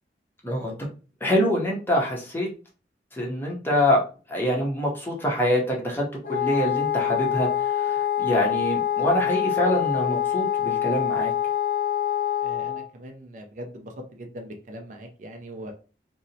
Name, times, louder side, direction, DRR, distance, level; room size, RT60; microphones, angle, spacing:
voice 1, 1.2-2.5 3.1-4.0 4.3-11.3, equal, 10° left, -2 dB, 0.7 m, -25 dB
Wind instrument woodwind instrument, 6.2-12.9, left 10 dB, 50° left, 0.5 m, -25 dB
voice 2, 12.4-15.7, equal, 45° right, 3 dB, 0.4 m, -40 dB
2.7 x 2.0 x 2.6 m, 0.35 s
head